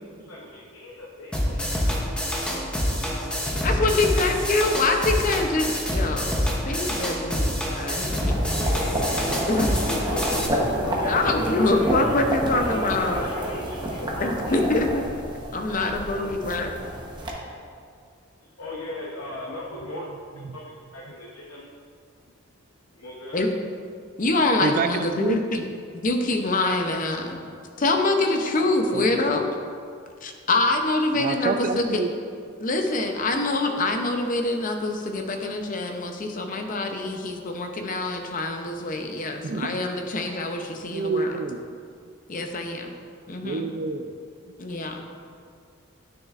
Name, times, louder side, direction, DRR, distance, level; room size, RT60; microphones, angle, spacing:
voice 1, 0.2-1.9 8.2-14.7 15.9-16.3 18.5-21.8 22.9-23.4, left 1 dB, 90° left, -4 dB, 0.9 m, -37 dB
sound 1, 1.3-10.5, equal, 5° left, 0.7 m, -26 dB
voice 2, 3.6-8.4 9.5-9.8 11.0-13.2 14.2-15.0 15.5-16.7 23.3-23.5 24.2-25.6 25.9-27.4 27.8-29.5 30.2-32.0 32.6-41.4 42.3-42.9 43.3-43.7 44.6-45.2, left 2 dB, 40° left, 4 dB, 0.6 m, -25 dB
sound 2, 8.2-17.3, right 1 dB, 20° right, 0.9 m, -29 dB
voice 3, 24.6-25.4 27.4-27.6 28.9-29.1 31.1-32.1 39.4-39.8 40.9-41.6 43.4-44.1, right 4 dB, 40° right, 10 dB, 0.3 m, -28 dB
9.8 x 6.4 x 2.5 m, 2.2 s
head